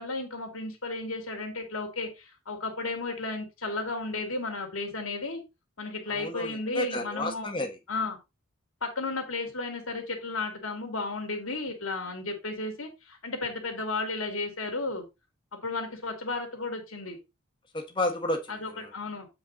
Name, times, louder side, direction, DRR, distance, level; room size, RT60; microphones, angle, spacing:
voice 1, 0.0-5.4 5.8-7.5 7.9-8.2 8.8-15.1 15.5-17.2 18.5-19.3, left 3 dB, 75° left, 2.5 m, -33 dB
voice 2, 6.1-7.8 17.7-18.9, left 1 dB, 25° left, 1.4 m, -32 dB
8.2 x 4.7 x 4.0 m
head